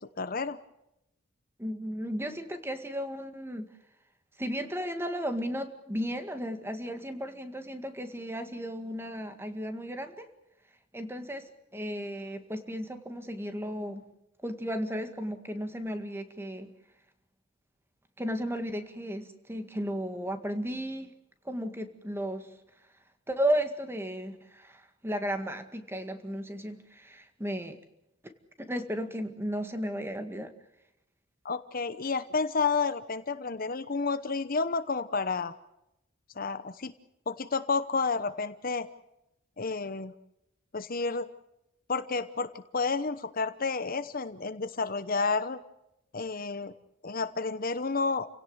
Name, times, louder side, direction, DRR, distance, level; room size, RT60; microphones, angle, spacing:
voice 1, 0.2-0.6 31.4-35.5 36.3-36.9 37.3-38.9 39.6-40.1 40.7-41.3 41.9-45.6 46.1-46.7 47.0-48.3, left 4 dB, 45° left, 12 dB, 0.9 m, -30 dB
voice 2, 1.6-3.7 4.4-10.3 10.9-14.0 14.4-16.7 18.2-21.1 21.5-22.5 23.3-27.8 28.6-30.5, equal, 10° right, 8 dB, 1.9 m, -34 dB
30.0 x 17.5 x 8.0 m, 0.86 s
head